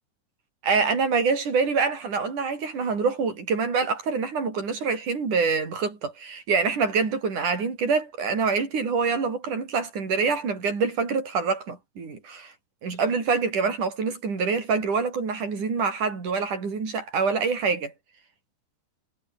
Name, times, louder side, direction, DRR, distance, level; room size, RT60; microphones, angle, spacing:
voice 1, 0.6-12.5 12.8-17.9, right 5 dB, 80° right, 6.6 m, -25 dB
omnidirectional pair, 3.5 m